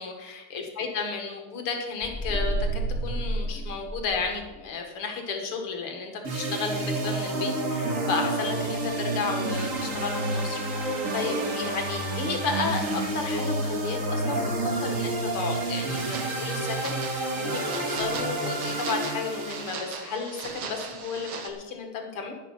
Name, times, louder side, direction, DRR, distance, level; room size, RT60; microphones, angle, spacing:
voice 1, 0.0-14.5 14.8-22.3, left 4 dB, 85° left, 3 dB, 2.7 m, -33 dB
sound 1, 2.0-4.4, right 1 dB, 5° left, 2.8 m, -30 dB
sound 2, 6.2-19.8, right 2 dB, 40° right, 1.9 m, -29 dB
sound 3, 16.0-21.5, right 5 dB, 65° right, 2.0 m, -39 dB
11.0 x 11.0 x 5.7 m, 1.2 s
omnidirectional pair, 2.4 m